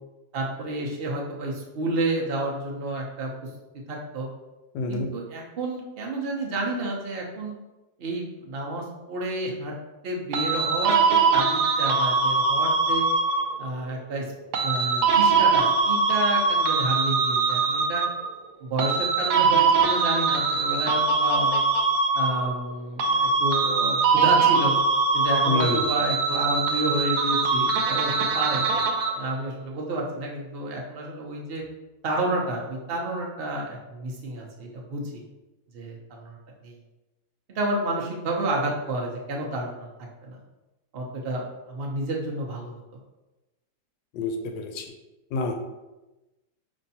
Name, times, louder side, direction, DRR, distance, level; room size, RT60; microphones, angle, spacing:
voice 1, 0.3-3.5 3.9-4.3 4.9-7.5 8.0-9.7 10.0-13.0 13.6-14.3 14.6-18.0 18.6-21.6 22.1-24.7 25.1-28.6 29.2-31.6 32.0-35.2 35.7-36.4 36.6-36.8 37.5-39.9 40.2-40.4 40.9-42.8, right 2 dB, 65° right, -1 dB, 0.6 m, -30 dB
voice 2, 4.7-5.1 25.5-25.9 44.1-44.8 45.3-45.5, left 2 dB, 75° left, 5 dB, 1.2 m, -27 dB
sound 1, 10.3-13.7 14.5-18.3 18.8-22.7 23.0-29.3, right 4 dB, 90° right, 1.3 m, -22 dB
5.4 x 3.1 x 2.7 m, 1.0 s
omnidirectional pair, 2.0 m